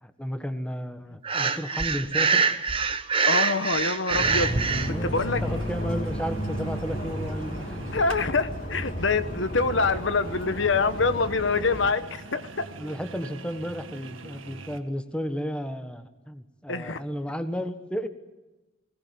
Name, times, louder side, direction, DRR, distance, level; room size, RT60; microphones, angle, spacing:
voice 1, 0.0-2.4 4.7-7.9 12.8-18.1, equal, 5° left, 8 dB, 1.5 m, -33 dB
Breathing, 1.2-4.9, right 5 dB, 25° right, 1.1 m, -24 dB
voice 2, 3.3-4.7 5.0-5.4 7.9-12.0 12.3-12.6 16.7-17.0, left 4 dB, 65° left, 11 dB, 1.2 m, -25 dB
sound 1, 4.1-11.9, equal, 45° left, 3.4 m, -33 dB
sound 2, 4.5-14.8, right 2 dB, 80° right, 2.0 m, -41 dB
21.5 x 19.0 x 9.5 m, 1.1 s
head